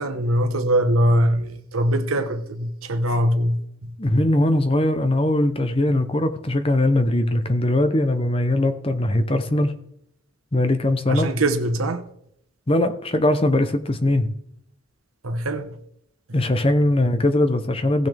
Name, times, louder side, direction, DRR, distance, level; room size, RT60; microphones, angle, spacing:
voice 1, 0.0-3.9 11.1-12.0 15.2-15.7, right 1 dB, 90° right, 1.2 m, -22 dB
voice 2, 4.0-9.7 10.5-11.3 12.7-14.3 16.3-18.1, left 1 dB, 25° left, 0.8 m, -20 dB
17.5 x 6.3 x 3.5 m
head